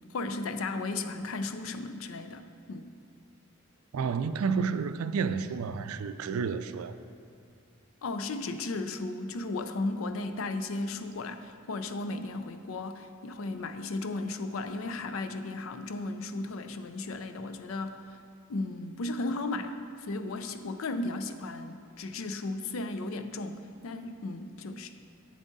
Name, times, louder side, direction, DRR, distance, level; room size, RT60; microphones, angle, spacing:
voice 1, 0.1-2.9 8.0-18.2 18.5-24.9, left 2 dB, 70° left, 0.5 m, -35 dB
voice 2, 3.9-7.0, right 5 dB, 85° right, 0.4 m, -30 dB
8.6 x 7.2 x 4.0 m
head